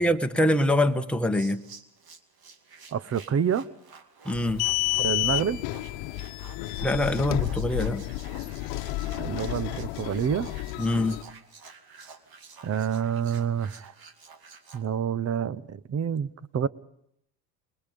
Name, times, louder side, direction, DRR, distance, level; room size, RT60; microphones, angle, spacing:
voice 1, 0.0-1.6 4.2-4.6 6.8-8.1 10.8-11.2, left 1 dB, ahead, 1.3 m, -24 dB
sound 1, 1.3-14.8, right 5 dB, 45° right, 2.5 m, -50 dB
voice 2, 2.9-3.7 5.0-5.6 9.2-10.5 12.6-13.9 14.7-16.7, right 8 dB, 30° right, 0.9 m, -28 dB
sound 2, 4.3-11.2, left 19 dB, 70° left, 1.2 m, -31 dB
27.5 x 21.0 x 5.3 m
supercardioid pair, 75°, 48 cm